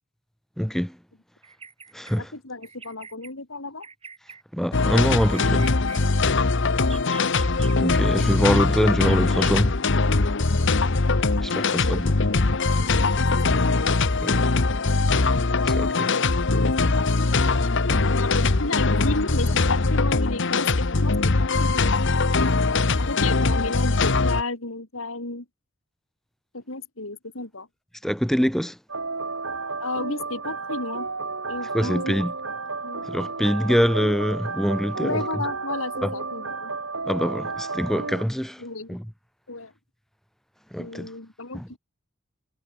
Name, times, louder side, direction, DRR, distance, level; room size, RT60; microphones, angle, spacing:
voice 1, 0.6-1.0 1.9-2.3 4.5-5.7 7.8-9.8 11.4-12.1 14.2-14.5 15.6-16.1 28.0-28.8 31.7-32.3 33.1-35.4 36.0-36.1 37.1-38.6 38.9-39.0 40.7-41.1 41.5-41.7, equal, ahead, 1.1 m, -24 dB
Bird vocalization bird call bird song, 1.4-2.2 2.6-3.3 3.8-4.4 5.0-6.0 6.8-7.7 8.5-8.6 9.1-9.6, right 6 dB, 30° right, 3.5 m, -43 dB
voice 2, 2.2-3.9 11.3-12.9 13.2-13.8 15.5-21.3 21.6-21.9 22.5-22.7 23.0-25.4 26.5-27.7 29.8-31.1 31.5-32.2 32.8-33.0 35.0-36.7 38.6-39.0 39.5-39.7 40.8-41.8, left 2 dB, 80° left, 3.2 m, -33 dB
sound 1, 4.7-24.4, left 3 dB, 65° left, 1.1 m, -21 dB
sound 2, 28.9-38.2, right 3 dB, 80° right, 5.2 m, -32 dB
head